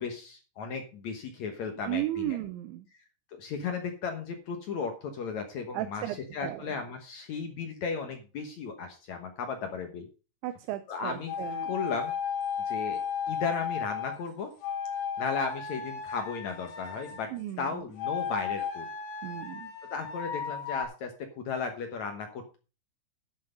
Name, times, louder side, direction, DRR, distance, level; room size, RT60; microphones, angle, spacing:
voice 1, 0.0-2.4 3.3-10.1 10.9-11.3 11.6-12.1 12.7-13.0 13.3-14.5 15.2-17.3 17.6-18.9 19.9-21.1 21.4-22.6, left 5 dB, 70° left, 5 dB, 1.7 m, -35 dB
voice 2, 1.8-2.9 5.7-6.7 10.4-11.8 17.3-17.7 19.2-19.7, right 14 dB, 90° right, 9 dB, 3.1 m, -35 dB
sound 1, 11.3-14.2 14.6-17.3 18.0-20.9, left 7 dB, 90° left, 4.5 m, -34 dB
11.5 x 6.6 x 5.3 m, 0.33 s
omnidirectional pair, 5.1 m